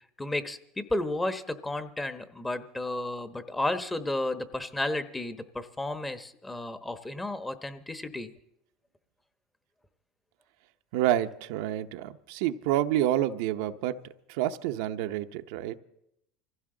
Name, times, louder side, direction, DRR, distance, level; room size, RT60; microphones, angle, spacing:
voice 1, 0.2-8.3, left 2 dB, 10° left, 1.1 m, -32 dB
voice 2, 10.9-14.0 14.3-15.8, right 12 dB, 75° right, 0.7 m, -28 dB
24.0 x 15.5 x 3.9 m
supercardioid pair, 105°, 0 cm